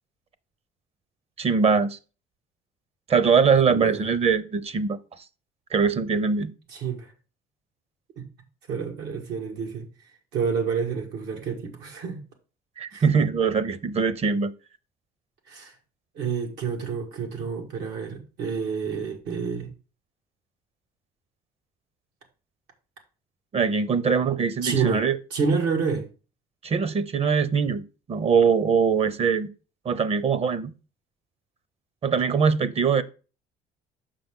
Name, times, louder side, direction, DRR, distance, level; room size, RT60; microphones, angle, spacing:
voice 1, 1.4-2.0 3.1-5.0 5.7-6.5 12.8-14.5 23.5-25.2 26.6-27.8 28.1-29.5 29.8-30.7 32.0-33.0, right 5 dB, 35° right, 0.7 m, -22 dB
voice 2, 3.7-4.1 6.7-7.1 8.2-8.3 8.7-9.9 10.3-12.2 12.9-13.0 15.5-15.7 16.2-19.7 24.6-25.0 25.3-26.1, right 5 dB, 90° right, 1.8 m, -28 dB
6.9 x 5.7 x 3.6 m
cardioid pair, 110°, 17 cm